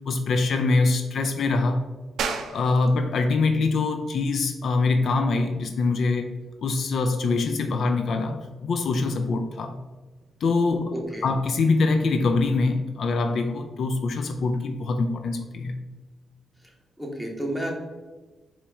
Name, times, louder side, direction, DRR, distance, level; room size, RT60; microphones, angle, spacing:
voice 1, 0.1-1.8 2.5-6.3 6.6-9.8 10.4-15.8, left 3 dB, 70° left, 7 dB, 0.3 m, -24 dB
sound 1, 2.2-12.4, right 5 dB, 80° right, 0.4 m, -41 dB
voice 2, 10.9-11.3 17.0-17.7, right 1 dB, 5° left, -1 dB, 1.2 m, -31 dB
4.3 x 3.0 x 3.5 m, 1.2 s
cardioid pair, 65°, 0 cm